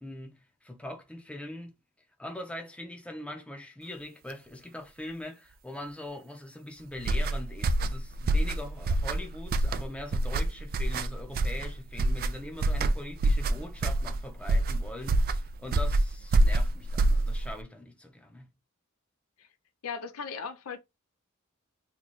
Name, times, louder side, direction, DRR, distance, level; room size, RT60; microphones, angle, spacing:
voice 1, 0.0-1.7 2.2-18.5, left 1 dB, 5° left, 0.7 m, -42 dB
sound 1, 7.0-17.6, right 2 dB, 45° right, 0.3 m, -26 dB
voice 2, 19.8-20.8, left 5 dB, 80° left, 0.5 m, -37 dB
3.0 x 2.3 x 4.0 m
head